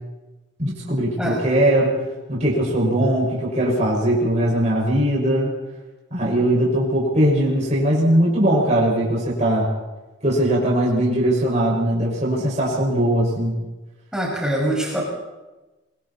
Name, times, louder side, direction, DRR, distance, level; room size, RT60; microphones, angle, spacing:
voice 1, 0.6-2.0 2.3-5.5 6.1-9.7 10.2-13.6, right 1 dB, 35° right, -4 dB, 6.4 m, -20 dB
voice 2, 14.1-15.0, right 1 dB, 5° right, -4 dB, 6.8 m, -23 dB
25.0 x 24.5 x 4.5 m, 1.1 s
head